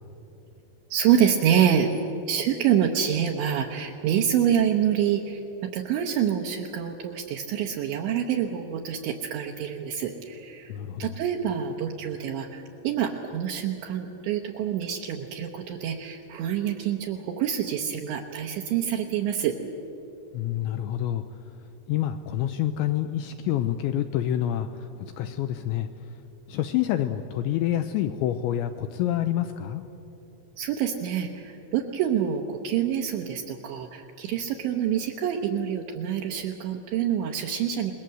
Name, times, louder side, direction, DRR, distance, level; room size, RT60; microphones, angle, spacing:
voice 1, 0.9-1.9 2.3-10.7 11.0-19.5 30.6-37.9, right 9 dB, 75° right, 1 dB, 3.0 m, -26 dB
voice 2, 10.7-11.1 20.3-21.3 21.9-25.9 26.5-29.8, left 11 dB, 85° left, 8 dB, 2.6 m, -27 dB
26.5 x 21.0 x 7.7 m, 3.0 s
omnidirectional pair, 5.9 m